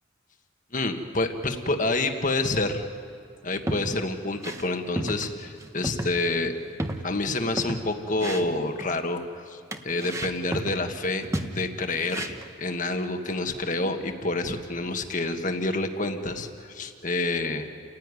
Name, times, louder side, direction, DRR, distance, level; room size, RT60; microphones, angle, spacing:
voice 1, 0.7-2.9 3.4-6.5 7.0-17.8, left 2 dB, 40° left, 6 dB, 1.6 m, -28 dB
sound 1, 3.5-4.0 4.3-4.7 5.0-5.3 5.6-6.1 6.4-6.5 6.8-7.9 8.2-8.9 9.7-10.8 11.2-11.6 12.1-12.5, right 1 dB, 15° right, 1.1 m, -33 dB
29.5 x 16.0 x 9.8 m, 2.4 s
head